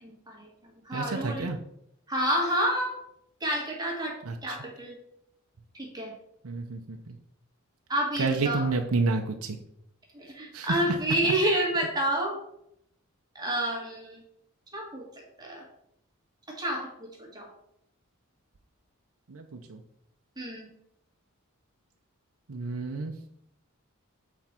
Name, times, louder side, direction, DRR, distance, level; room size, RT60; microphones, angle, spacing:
voice 1, 0.0-0.5 0.8-1.5 2.1-2.9 3.4-4.2 4.4-5.0 5.7-6.1 7.9-8.7 10.1-12.4 13.3-14.2 14.7-15.0 15.4-15.6 16.5-16.9 17.2-17.5 20.4-20.7, right 1 dB, 20° right, -1 dB, 1.7 m, -29 dB
voice 2, 0.9-1.6 4.2-4.6 6.4-7.2 8.2-9.6 10.5-10.8 11.2-11.3 19.3-19.8 22.5-23.1, right 3 dB, 80° right, 3 dB, 0.7 m, -30 dB
8.1 x 4.5 x 4.4 m, 0.76 s
head